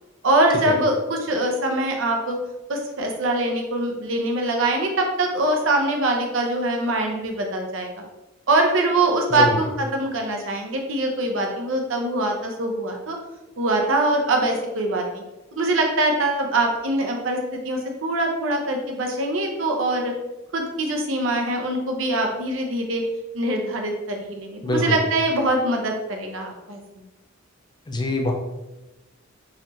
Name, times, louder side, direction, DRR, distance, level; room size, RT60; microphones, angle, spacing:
voice 1, 0.2-2.4 2.7-7.9 8.5-13.2 13.6-15.2 15.5-17.4 17.6-20.1 20.5-23.0 23.3-26.8, right 2 dB, 70° right, 2 dB, 0.7 m, -23 dB
voice 2, 24.6-25.0 27.9-28.3, left 1 dB, 20° left, 2 dB, 0.4 m, -24 dB
4.0 x 3.0 x 2.9 m, 1.0 s
head